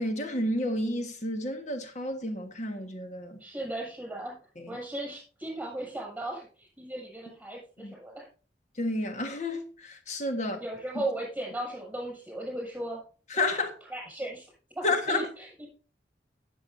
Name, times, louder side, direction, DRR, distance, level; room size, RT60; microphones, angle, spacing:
voice 1, 0.0-3.4 4.6-4.8 7.8-7.9 8.8-10.6 13.3-13.7 14.8-15.3, left 2 dB, 40° left, 1.5 m, -30 dB
voice 2, 3.4-4.3 4.7-8.3 10.6-13.0 13.5-13.6 13.9-14.4 14.7-15.7, right 1 dB, 5° right, 6.8 m, -36 dB
17.5 x 7.7 x 2.7 m
head